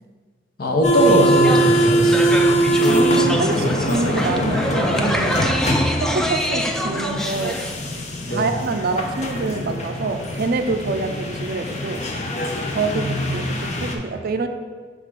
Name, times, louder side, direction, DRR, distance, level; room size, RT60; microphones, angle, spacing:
voice 1, 0.6-2.1 8.3-8.4 12.9-13.5, equal, 55° left, 0 dB, 1.0 m, -20 dB
sound 1, 0.8-13.9, right 1 dB, 40° left, 0.7 m, -22 dB
sound 2, 0.9-7.7, equal, 5° left, 0.4 m, -26 dB
voice 2, 2.9-5.5 6.0-7.6 8.3-12.0 12.7-14.5, right 3 dB, 55° right, 7 dB, 0.4 m, -26 dB
6.3 x 3.7 x 4.9 m, 1.5 s
head